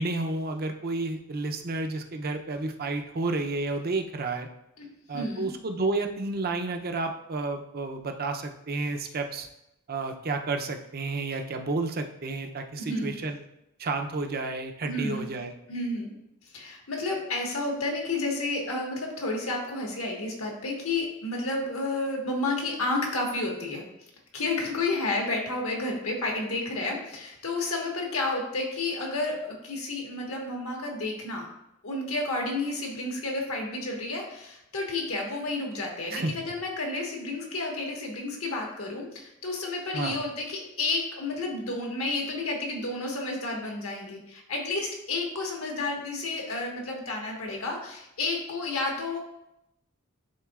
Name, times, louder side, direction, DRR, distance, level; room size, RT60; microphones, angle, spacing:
voice 1, 0.0-4.5 5.1-9.5 9.9-13.4 13.8-15.5 36.1-36.3 39.9-40.2, right 3 dB, 45° right, 5 dB, 0.6 m, -31 dB
voice 2, 5.1-5.5 12.8-13.1 14.8-15.2 15.7-16.1 16.5-23.8 24.3-31.5 31.8-49.2, left 2 dB, 75° left, 0 dB, 1.5 m, -31 dB
10.5 x 3.8 x 2.4 m, 0.83 s
head